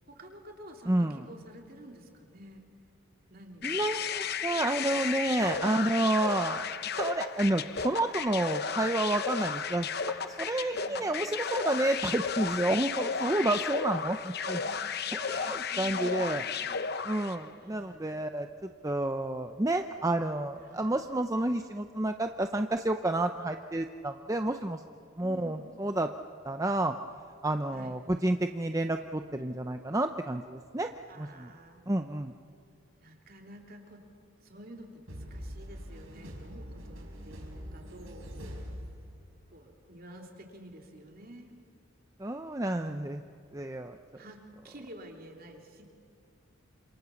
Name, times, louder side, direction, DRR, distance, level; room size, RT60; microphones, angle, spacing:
voice 1, 0.1-2.6 3.3-4.1 9.0-9.1 10.7-11.1 14.4-14.8 15.7-16.5 17.6-18.0 20.5-21.1 25.2-25.8 27.7-28.0 31.1-31.9 33.0-34.1 34.4-38.7 39.5-41.5 42.7-43.3 44.1-45.9, right 1 dB, 45° right, 2 dB, 3.3 m, -50 dB
voice 2, 0.9-1.2 3.6-14.6 15.1-16.4 17.0-24.8 25.2-26.1 26.4-26.9 27.4-30.9 31.2-31.5 31.9-32.3 42.2-43.2 43.5-44.0, right 1 dB, 15° right, 6 dB, 0.6 m, -30 dB
sound 1, 3.6-17.4, left 6 dB, 45° left, 0.9 m, -34 dB
sound 2, 35.1-39.5, equal, 70° right, 5.2 m, -43 dB
28.5 x 27.0 x 7.2 m, 2.4 s
head